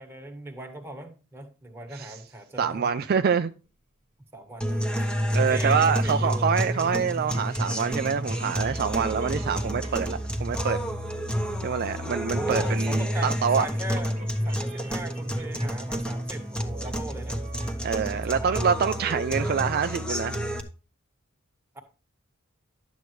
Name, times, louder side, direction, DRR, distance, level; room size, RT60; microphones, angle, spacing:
voice 1, 0.0-2.9 4.3-6.5 12.3-14.2 14.4-18.5 21.7-21.8, right 1 dB, 10° right, 1.6 m, -39 dB
voice 2, 2.6-3.5 5.3-10.8 11.6-13.7 17.8-20.3, right 6 dB, 50° right, 0.4 m, -26 dB
sound 1, 4.6-20.6, equal, 5° left, 1.1 m, -29 dB
sound 2, 5.3-10.6 12.8-18.5, right 2 dB, 35° right, 1.4 m, -45 dB
11.5 x 8.0 x 3.1 m
head